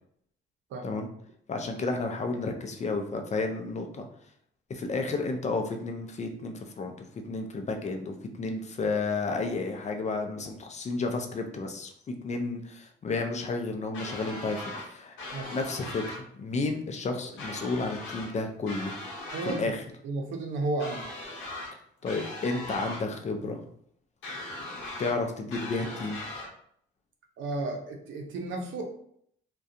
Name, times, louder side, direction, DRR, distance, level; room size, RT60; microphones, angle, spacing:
voice 1, 1.5-4.1 4.7-15.2 15.5-18.9 19.4-19.8 22.0-23.6 25.0-26.2, left 3 dB, 35° left, 4 dB, 0.4 m, -32 dB
sound 1, 13.9-14.9 15.2-16.2 17.4-18.3 18.7-19.6 20.8-21.7 22.1-23.0 24.2-25.2 25.5-26.5, left 2 dB, 75° left, 0.8 m, -39 dB
voice 2, 19.3-19.7 20.0-21.1 27.4-28.8, right 2 dB, 75° right, 3 dB, 0.6 m, -33 dB
2.4 x 2.2 x 2.7 m, 0.67 s
cardioid pair, 90°, 20 cm